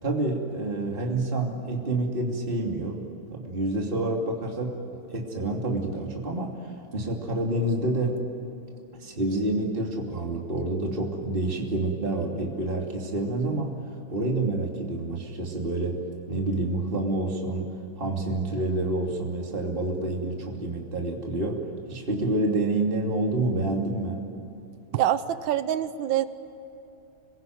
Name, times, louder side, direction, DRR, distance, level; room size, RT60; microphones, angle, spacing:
voice 1, 0.0-3.0 3.3-8.2 9.0-13.8 14.1-16.0 16.3-24.3, right 2 dB, 25° right, 0 dB, 3.0 m, -28 dB
voice 2, 24.9-26.3, right 11 dB, 75° right, 12 dB, 1.7 m, -25 dB
27.5 x 22.0 x 9.4 m, 2.8 s
omnidirectional pair, 2.1 m